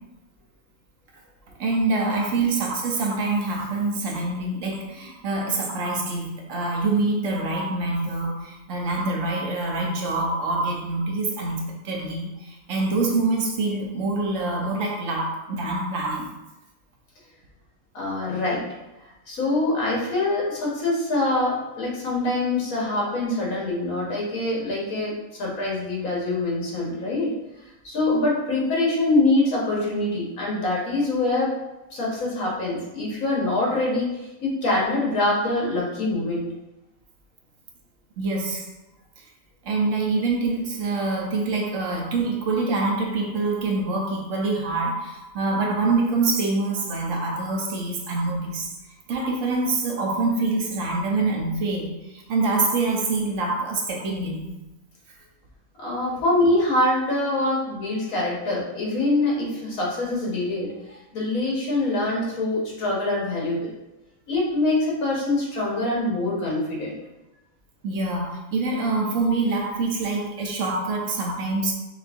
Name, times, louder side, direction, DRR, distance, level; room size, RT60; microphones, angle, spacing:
voice 1, 1.6-11.6 11.8-16.3 38.2-38.6 39.6-48.7 49.1-54.5 67.8-71.7, right 3 dB, 65° right, 0 dB, 1.0 m, -25 dB
voice 2, 17.9-18.6 19.3-25.1 25.4-27.3 27.8-31.5 31.9-36.5 55.8-63.7 64.3-67.0, left 2 dB, 80° left, -5 dB, 1.7 m, -24 dB
6.0 x 2.4 x 2.5 m, 0.98 s
omnidirectional pair, 1.5 m